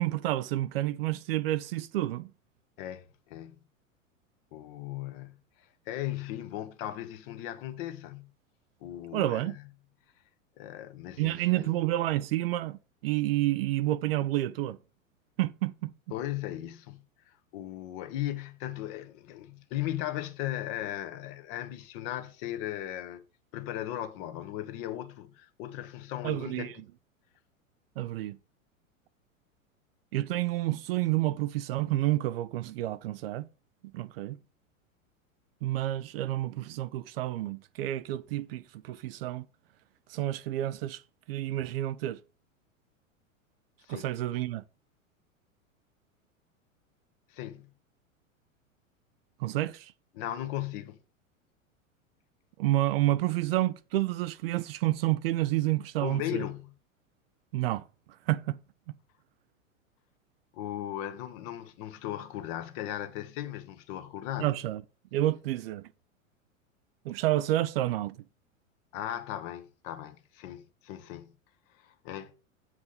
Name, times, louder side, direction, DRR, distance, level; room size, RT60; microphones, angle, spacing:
voice 1, 0.0-2.3 9.1-9.6 11.2-14.8 15.4-15.9 26.2-26.7 28.0-28.4 30.1-33.5 33.9-34.4 35.6-39.5 40.1-41.0 41.3-42.2 43.9-44.6 49.4-49.9 52.6-56.4 57.5-57.8 58.3-58.6 64.4-64.8 65.1-65.9 67.1-68.2, right 15 dB, 50° right, 0.5 m, -29 dB
voice 2, 2.8-3.5 4.5-8.3 8.8-9.6 10.6-11.8 16.1-23.2 23.5-26.7 43.8-44.1 47.3-47.7 50.1-51.0 56.0-56.7 60.5-64.5 68.9-71.3 71.7-72.3, left 13 dB, 45° left, 1.2 m, -37 dB
8.3 x 4.8 x 5.1 m
figure-of-eight pair, 95°, 40 cm